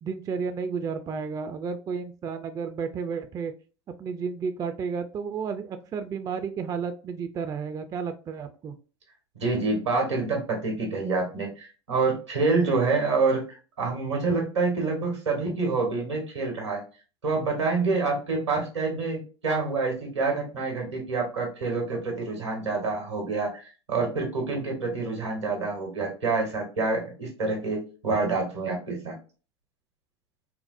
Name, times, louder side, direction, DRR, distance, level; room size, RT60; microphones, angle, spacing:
voice 1, 0.0-3.5 4.0-8.8, right 5 dB, 25° right, 8 dB, 0.4 m, -32 dB
voice 2, 9.4-16.8 17.2-29.1, right 3 dB, 90° right, 1 dB, 1.4 m, -27 dB
4.2 x 2.0 x 2.5 m, 0.35 s
hypercardioid pair, 80°, 14 cm